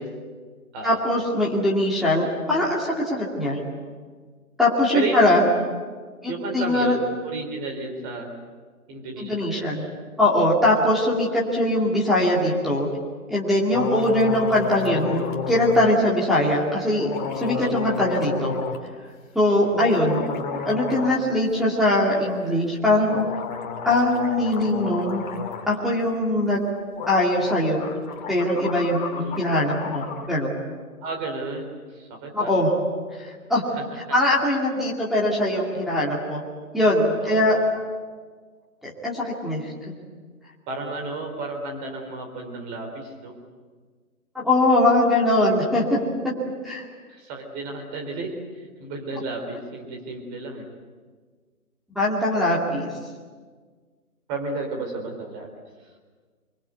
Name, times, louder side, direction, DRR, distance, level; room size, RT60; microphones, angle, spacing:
voice 1, 0.8-3.6 4.6-5.4 6.2-6.9 9.2-9.8 10.2-12.9 13.3-18.5 19.3-20.2 20.6-23.3 23.9-25.2 25.7-26.6 27.1-27.9 28.3-30.5 32.3-32.7 33.2-33.6 34.1-36.4 36.7-37.6 38.8-39.6 44.3-46.0 46.6-46.8 51.9-52.9, left 1 dB, ahead, -7 dB, 2.2 m, -21 dB
voice 2, 4.9-5.4 6.3-8.3 8.9-9.7 10.7-10.8 17.5-17.7 19.5-19.7 29.1-29.4 31.0-32.5 33.8-34.2 37.2-37.5 40.7-43.3 47.1-48.4 48.8-50.6 54.3-55.5, right 3 dB, 20° right, 3 dB, 4.0 m, -32 dB
sound 1, 13.7-15.9 17.0-18.8 19.6-21.3 21.5-21.6 23.1-25.7 26.7-26.8 27.0-30.3, left 6 dB, 30° left, 2.5 m, -32 dB
24.5 x 23.5 x 8.2 m, 1.5 s
figure-of-eight pair, 145°, 45 cm